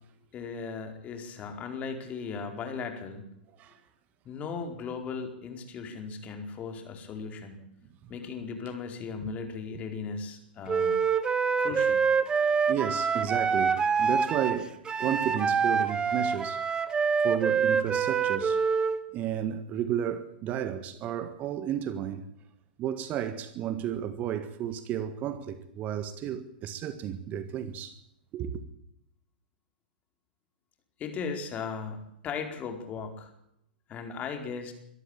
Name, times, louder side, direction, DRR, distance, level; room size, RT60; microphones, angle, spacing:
voice 1, 0.3-3.2 4.2-7.6 8.1-11.0 11.6-12.0 31.0-33.3 33.9-34.7, left 5 dB, 25° left, 4.6 m, -37 dB
Wind instrument woodwind instrument, 10.7-19.0, right 6 dB, 15° right, 1.5 m, -26 dB
voice 2, 12.5-16.6 17.2-18.6 19.1-22.2 22.8-28.0 28.3-28.6, right 10 dB, 30° right, 1.7 m, -33 dB
23.0 x 13.5 x 9.0 m
figure-of-eight pair, 110°, 5 cm